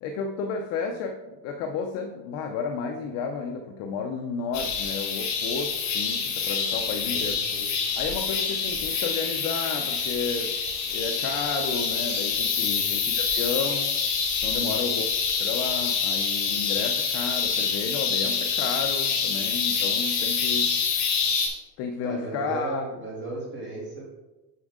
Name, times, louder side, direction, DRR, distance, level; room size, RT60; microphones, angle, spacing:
voice 1, 0.0-7.5 8.0-10.5 10.9-14.0 14.4-15.0 15.4-20.8 21.8-22.8, left 5 dB, 35° left, 4 dB, 0.4 m, -32 dB
sound 1, 4.5-21.5, left 6 dB, 60° left, 2.8 m, -26 dB
voice 2, 7.0-7.7 12.6-12.8 14.4-14.8 22.0-24.0, right 2 dB, 20° right, -4 dB, 2.6 m, -36 dB
8.2 x 6.2 x 3.6 m, 1.1 s
supercardioid pair, 155°, 50 cm